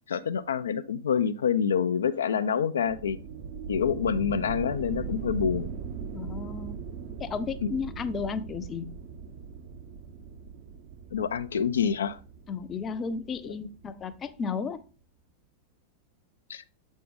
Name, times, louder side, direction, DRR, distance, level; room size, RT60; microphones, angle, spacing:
voice 1, 0.1-3.2 3.7-5.7 7.6-7.7 11.1-12.2 13.4-13.6 16.5-16.6, left 7 dB, 65° left, 0.4 m, -27 dB
sound 1, 2.9-14.3, right 6 dB, 50° right, 0.7 m, -40 dB
voice 2, 6.1-6.8 7.2-8.9 12.5-14.8, left 5 dB, 25° left, 0.6 m, -33 dB
7.5 x 5.2 x 3.6 m
figure-of-eight pair, 90°, 0 cm